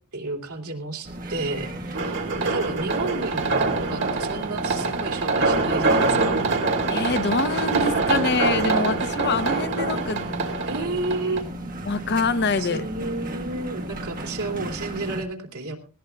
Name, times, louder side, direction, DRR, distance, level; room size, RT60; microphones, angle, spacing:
voice 1, 0.1-6.4 10.6-11.4 12.6-15.8, right 2 dB, 80° right, 3.0 m, -31 dB
sound 1, 1.0-15.2, right 1 dB, 40° right, 1.7 m, -36 dB
sound 2, 1.9-11.4, right 3 dB, 60° right, 2.8 m, -24 dB
voice 2, 6.9-10.5 11.8-12.9, left 3 dB, 50° left, 0.8 m, -25 dB
20.0 x 17.5 x 2.3 m
head